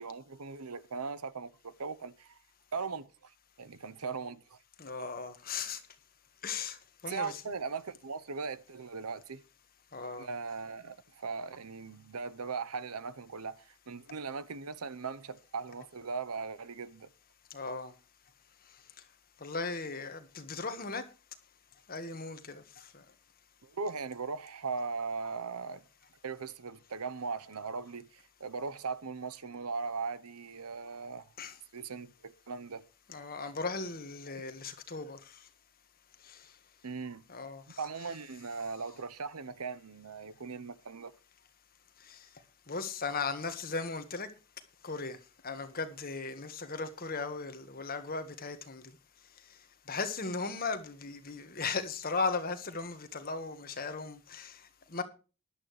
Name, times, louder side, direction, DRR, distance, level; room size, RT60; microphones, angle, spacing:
voice 1, 0.0-2.4 2.7-3.3 3.6-4.6 7.1-9.4 10.2-17.1 23.6-25.8 26.2-31.3 31.7-32.8 34.3-34.4 36.8-37.2 37.8-41.1, right 4 dB, 90° right, 0.9 m, -39 dB
voice 2, 4.8-5.8 6.4-6.8 7.0-7.4 9.9-10.3 17.5-17.9 19.4-21.0 21.9-22.9 31.4-31.6 33.1-35.4 36.3-36.4 37.3-37.8 42.1-42.2 42.7-44.3 44.8-45.2 45.4-48.8 49.9-54.6 54.9-55.0, left 4 dB, 40° left, 1.6 m, -37 dB
15.0 x 11.5 x 3.3 m
head